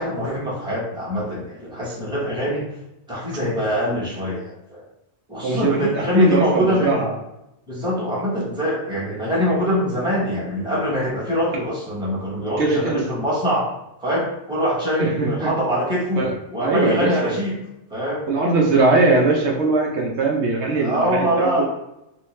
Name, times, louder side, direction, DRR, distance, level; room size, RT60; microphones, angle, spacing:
voice 1, 0.0-2.6 3.1-4.8 5.3-7.0 7.7-13.7 14.0-16.2 16.5-17.6 17.9-18.2 20.7-21.6, equal, 5° right, -7 dB, 1.0 m, -23 dB
voice 2, 5.4-7.1 12.6-13.1 15.0-15.5 16.2-17.3 18.3-21.6, right 3 dB, 70° right, -1 dB, 0.9 m, -20 dB
3.1 x 2.7 x 3.1 m, 0.87 s
omnidirectional pair, 1.2 m